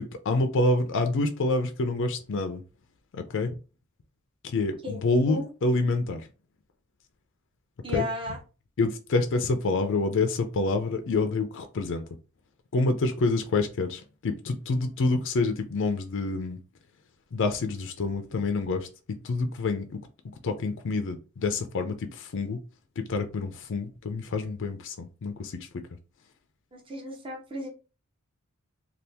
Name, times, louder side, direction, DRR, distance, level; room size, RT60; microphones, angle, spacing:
voice 1, 0.0-2.6 3.1-3.5 4.4-6.3 7.9-8.0 8.8-12.1 12.7-16.6 17.3-18.9 19.2-19.9 20.4-22.6 23.1-25.6, left 3 dB, 60° left, 6 dB, 0.4 m, -27 dB
voice 2, 7.8-8.4 26.7-27.7, left 1 dB, 25° right, -1 dB, 0.8 m, -34 dB
2.7 x 2.4 x 3.4 m, 0.33 s
head